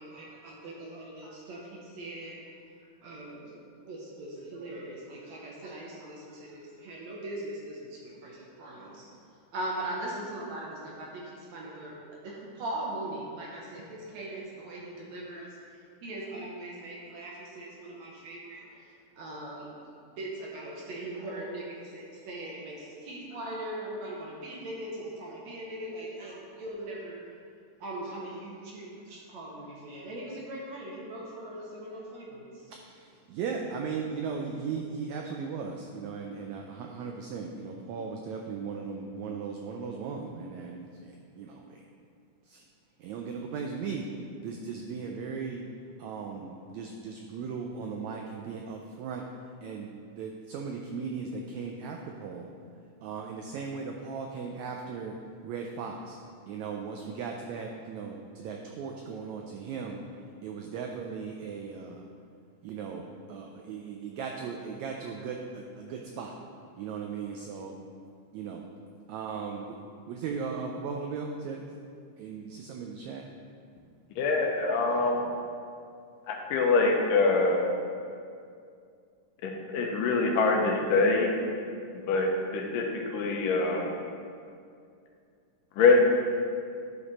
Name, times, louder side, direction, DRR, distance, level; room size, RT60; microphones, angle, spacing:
voice 1, 0.0-2.4 3.0-3.6 3.8-9.1 9.5-11.2 11.5-12.0 12.2-15.5 16.0-18.6 19.2-19.7 20.2-27.2 27.8-32.4, right 1 dB, 65° right, -3 dB, 2.1 m, -40 dB
voice 2, 33.4-40.8 41.4-41.5 43.0-44.0 44.4-45.6 46.0-46.5 46.7-49.2 49.6-49.9 50.2-52.4 53.0-55.1 55.4-55.9 56.5-58.2 58.4-60.0 60.4-61.9 62.6-63.0 63.3-65.4 65.8-66.3 66.8-67.7 68.3-68.6 69.1-69.6 70.1-71.6 72.2-73.2, right 5 dB, 85° right, 2 dB, 1.6 m, -37 dB
voice 3, 74.2-75.2 76.3-77.7 79.4-81.3 81.9-83.9 85.8-86.0, left 3 dB, 80° left, 1 dB, 2.4 m, -24 dB
11.0 x 5.2 x 4.1 m, 2.3 s
omnidirectional pair, 3.8 m